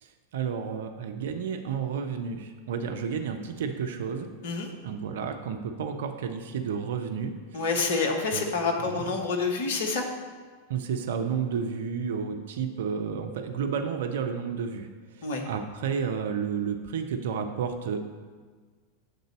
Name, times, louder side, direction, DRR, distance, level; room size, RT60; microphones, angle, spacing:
voice 1, 0.0-4.3 4.8-7.6 8.3-8.4 8.8-9.2 10.7-18.1, right 6 dB, 60° right, 6 dB, 0.5 m, -31 dB
voice 2, 7.5-10.0 15.2-15.4, left 4 dB, 55° left, 2 dB, 1.1 m, -27 dB
6.6 x 3.9 x 6.2 m, 1.5 s
figure-of-eight pair, 90°, 0 cm